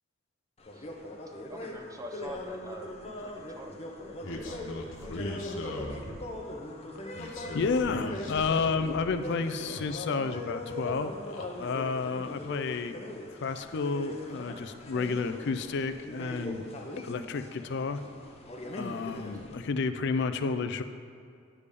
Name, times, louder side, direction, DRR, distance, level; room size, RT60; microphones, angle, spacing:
sound 1, 0.6-19.5, left 1 dB, 35° left, 0.8 m, -41 dB
voice 1, 1.5-4.7 5.0-6.2 19.1-19.2, right 1 dB, 15° right, 4 dB, 0.6 m, -46 dB
sound 2, 4.2-6.4 7.1-9.1 9.5-10.4 10.7-11.5, left 1 dB, 85° left, 0.8 m, -40 dB
voice 2, 7.1-11.1 11.6-13.0 13.3-16.7 17.0-18.0 18.7-20.8, left 4 dB, 60° left, 10 dB, 0.4 m, -31 dB
9.8 x 3.5 x 6.7 m, 2.4 s
head